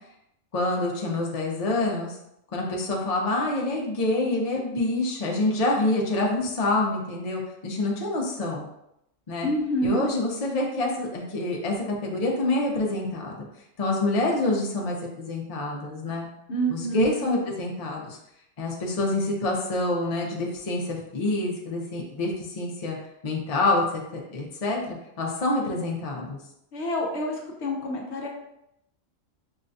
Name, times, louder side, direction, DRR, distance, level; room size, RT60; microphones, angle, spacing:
voice 1, 0.5-2.2 2.5-8.7 9.3-9.5 9.8-13.4 13.8-16.3 16.7-18.2 18.6-23.0 23.2-26.4, left 2 dB, 40° left, -1 dB, 0.6 m, -27 dB
voice 2, 9.4-10.1 16.5-17.1 26.7-28.3, right 1 dB, 65° left, 0 dB, 0.9 m, -27 dB
5.4 x 2.2 x 2.6 m, 0.80 s
omnidirectional pair, 1.3 m